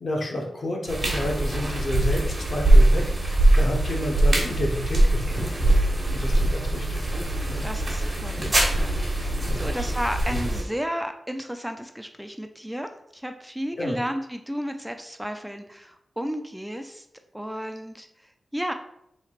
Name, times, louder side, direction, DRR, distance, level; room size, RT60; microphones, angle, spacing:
voice 1, 0.0-5.7 6.1-7.1 7.5-7.6 8.4-8.5 9.3-9.9 10.3-10.4 13.7-13.9, left 1 dB, 60° left, 0 dB, 0.8 m, -31 dB
sound 1, 0.9-10.6, right 1 dB, 40° right, 1.2 m, -22 dB
voice 2, 7.6-17.1 17.3-18.7, equal, 5° right, 7 dB, 0.3 m, -33 dB
4.1 x 3.2 x 2.4 m, 0.77 s
cardioid pair, 55°, 0 cm